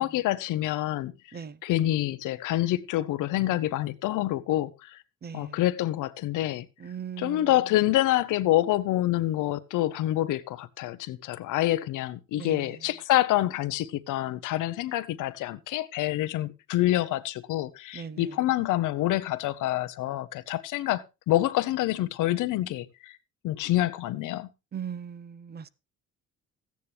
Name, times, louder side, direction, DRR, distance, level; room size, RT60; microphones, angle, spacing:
voice 1, 0.0-5.0 5.3-6.7 7.2-23.2 23.4-24.5, left 15 dB, 90° left, 0.8 m, -27 dB
voice 2, 5.2-5.6 6.8-7.5 12.4-12.8 17.9-18.4 24.7-25.7, right 7 dB, 35° right, 0.6 m, -39 dB
14.0 x 9.4 x 3.3 m
cardioid pair, 90°, 30 cm